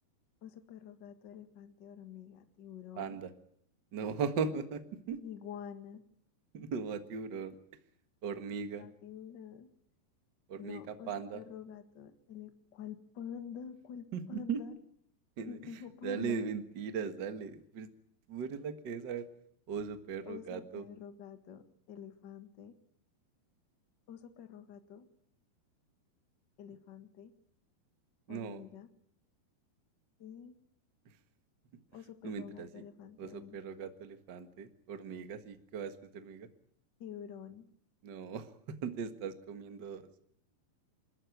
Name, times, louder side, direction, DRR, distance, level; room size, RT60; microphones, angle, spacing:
voice 1, 0.4-3.2 5.2-6.0 8.7-9.7 10.6-14.7 15.5-16.4 20.2-22.7 24.1-25.1 26.6-27.3 28.3-28.9 30.2-30.5 31.9-33.6 37.0-37.7, left 8 dB, 55° left, 8 dB, 1.2 m, -47 dB
voice 2, 2.9-3.3 3.9-5.2 6.5-7.5 8.2-8.9 10.5-11.4 14.1-14.6 15.4-15.6 16.0-17.9 18.3-19.3 19.7-20.8 28.3-28.6 32.2-32.7 33.2-36.5 38.0-40.1, right 6 dB, 75° right, 9 dB, 1.0 m, -38 dB
27.5 x 13.5 x 9.3 m, 0.69 s
omnidirectional pair, 4.8 m